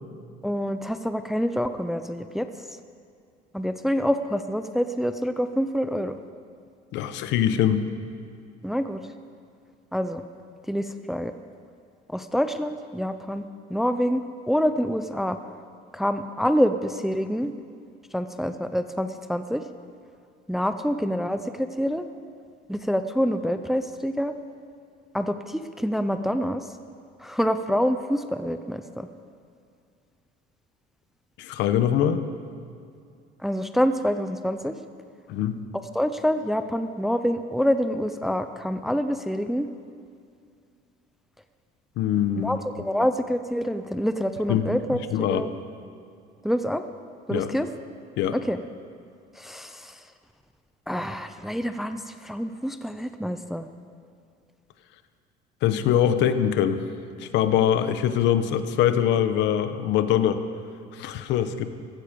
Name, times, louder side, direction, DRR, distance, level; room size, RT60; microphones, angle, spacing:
voice 1, 0.4-2.5 3.5-6.2 8.6-9.0 9.9-10.2 10.7-11.3 12.1-13.4 13.7-14.2 14.5-15.4 15.9-17.5 18.1-19.6 20.5-22.0 22.7-24.3 25.1-26.6 27.2-29.1 33.4-34.7 35.9-39.7 42.4-45.5 46.4-46.8 47.3-47.7 48.3-48.6 49.4-49.9 50.9-53.7, equal, ahead, 9 dB, 0.5 m, -26 dB
voice 2, 6.9-7.9 31.4-32.2 35.3-35.6 42.0-42.6 44.5-44.8 45.1-45.4 47.3-47.5 48.2-48.4 55.6-56.8 57.2-60.4 60.9-61.7, left 9 dB, 70° left, 10 dB, 1.0 m, -23 dB
15.5 x 15.0 x 5.2 m, 2.4 s
cardioid pair, 140°, 19 cm